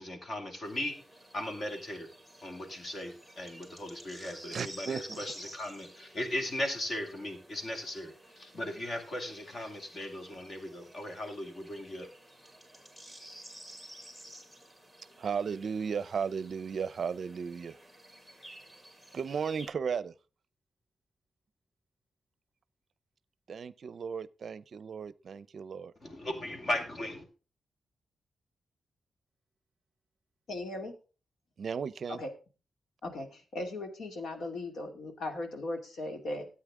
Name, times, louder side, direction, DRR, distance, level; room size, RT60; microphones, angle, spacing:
voice 1, 0.0-2.1 2.4-12.1 26.0-27.3, left 1 dB, 45° left, 2.7 m, -37 dB
sound 1, 0.6-19.7, right 1 dB, 10° left, 2.8 m, -52 dB
voice 2, 4.5-5.2 15.2-17.8 19.1-20.1 23.5-25.9 31.6-32.2, right 6 dB, 55° right, 0.5 m, -35 dB
voice 3, 30.5-30.9 32.1-32.3 33.0-36.5, left 2 dB, 75° left, 2.4 m, -38 dB
13.5 x 8.7 x 3.7 m
wide cardioid pair, 150°, 0 cm